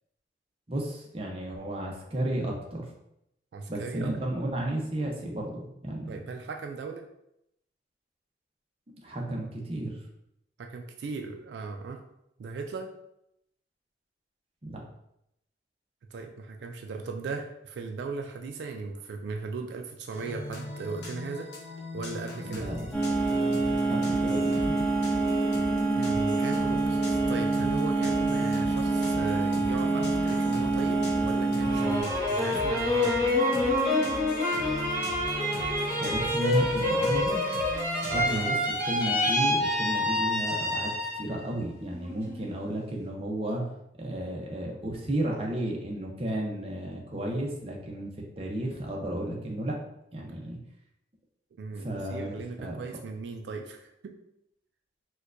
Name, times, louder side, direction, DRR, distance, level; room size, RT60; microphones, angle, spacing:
voice 1, 0.7-2.8 3.7-6.2 9.0-10.0 14.6-14.8 22.3-22.9 23.9-24.9 36.0-37.4 38.1-43.7 44.0-48.1 48.4-49.8 50.1-50.6 51.8-52.8, right 1 dB, 35° right, -1 dB, 0.6 m, -33 dB
voice 2, 3.5-4.1 6.1-7.0 10.6-12.0 12.4-12.9 16.1-21.5 21.9-22.9 25.9-33.4 38.1-38.5 51.5-54.1, right 4 dB, 85° right, 4 dB, 0.3 m, -37 dB
sound 1, 20.1-38.4, left 1 dB, 90° left, 0.8 m, -39 dB
sound 2, 22.9-32.0, right 3 dB, 5° left, 0.7 m, -26 dB
sound 3, 31.6-41.4 41.8-42.5, left 1 dB, 15° right, 1.2 m, -27 dB
4.4 x 2.2 x 2.5 m, 0.80 s
head